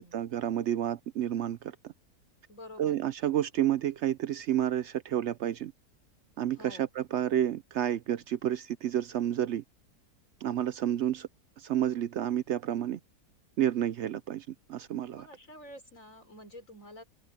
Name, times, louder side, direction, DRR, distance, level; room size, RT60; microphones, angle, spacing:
voice 1, 0.0-1.9 2.8-5.7 6.4-9.6 10.4-11.3 11.6-13.0 13.6-15.3, right 11 dB, 70° right, 0.6 m, -30 dB
voice 2, 2.5-3.0 6.6-6.9 15.1-17.0, left 1 dB, 55° left, 5.1 m, -48 dB
open air
omnidirectional pair, 1.7 m